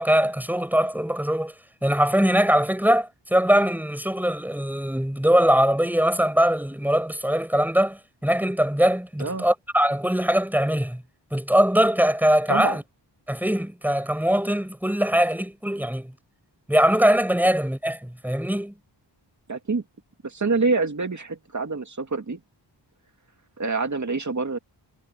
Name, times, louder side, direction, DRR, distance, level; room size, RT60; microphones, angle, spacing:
voice 1, 0.0-1.5 1.8-11.0 11.3-12.8 13.3-16.1 16.7-18.7, equal, 5° right, 6.6 m, -22 dB
voice 2, 12.5-12.8 19.5-19.8 20.2-22.4 23.6-24.6, right 3 dB, 40° right, 2.6 m, -26 dB
wide cardioid pair, 95°, 45 cm